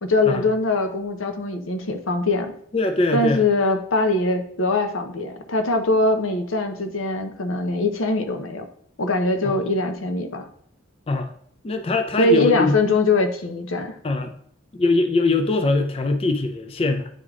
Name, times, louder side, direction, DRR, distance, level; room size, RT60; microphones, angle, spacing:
voice 1, 0.0-2.5 3.1-8.6 9.0-10.5 12.2-14.0, left 2 dB, 85° left, 0.8 m, -22 dB
voice 2, 2.7-3.4 9.4-9.6 11.1-11.3 11.6-12.8 14.0-14.3 14.7-17.1, left 3 dB, 30° left, 0.4 m, -22 dB
9.4 x 3.4 x 3.6 m
head